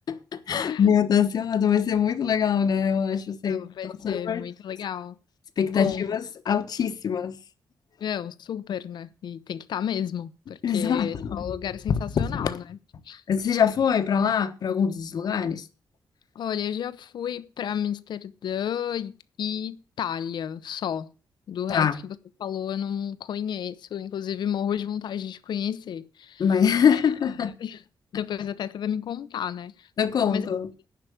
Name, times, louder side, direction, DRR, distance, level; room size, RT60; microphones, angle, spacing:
voice 1, 0.1-3.6 4.0-4.4 5.6-7.4 10.6-11.5 12.2-12.5 13.3-15.6 21.7-22.0 26.4-27.5 30.0-30.7, left 7 dB, 60° left, 1.2 m, -24 dB
voice 2, 3.4-5.1 5.7-6.1 8.0-12.8 13.1-13.2 16.3-21.1 21.5-26.4 26.9-27.0 27.4-27.8 28.1-29.9 30.3-30.5, left 9 dB, 80° left, 0.8 m, -32 dB
10.5 x 5.9 x 8.5 m
wide cardioid pair, 160°, 8 cm